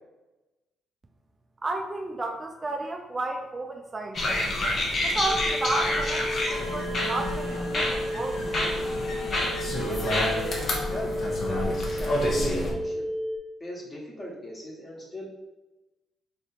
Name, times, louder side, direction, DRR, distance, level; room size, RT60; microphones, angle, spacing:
voice 1, 1.6-4.5 5.0-6.2 6.5-8.4, right 2 dB, 25° right, 2 dB, 0.4 m, -32 dB
sound 1, 4.1-12.7, left 1 dB, 50° left, 0.9 m, -28 dB
sound 2, 5.3-13.4, equal, 60° right, 0.8 m, -33 dB
Wind instrument woodwind instrument, 6.6-8.6, right 2 dB, 90° left, 0.9 m, -47 dB
voice 2, 9.8-13.1 13.6-15.3, equal, 25° left, -2 dB, 1.3 m, -38 dB
3.3 x 2.9 x 4.3 m, 1.0 s
cardioid pair, 90°, 0 cm